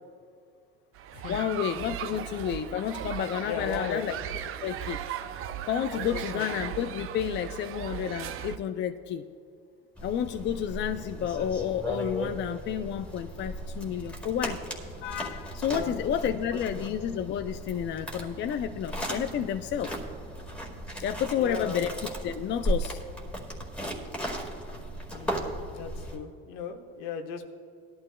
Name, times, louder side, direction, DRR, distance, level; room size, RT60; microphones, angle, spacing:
sound 1, 1.0-8.6, right 10 dB, 45° right, 0.6 m, -37 dB
voice 1, 1.3-4.1 4.6-5.0 5.7-9.2 10.0-14.6 15.0-19.9 21.0-21.9 22.2-23.0, left 9 dB, 40° left, 8 dB, 0.4 m, -30 dB
voice 2, 3.4-4.0 5.9-6.7 15.7-16.8 21.4-21.8 25.1-25.4 25.7-27.5, left 6 dB, 70° left, 5 dB, 1.2 m, -38 dB
sound 2, 10.0-26.2, right 1 dB, 5° left, 2.0 m, -36 dB
18.0 x 12.0 x 2.3 m, 2.3 s
supercardioid pair, 105°, 30 cm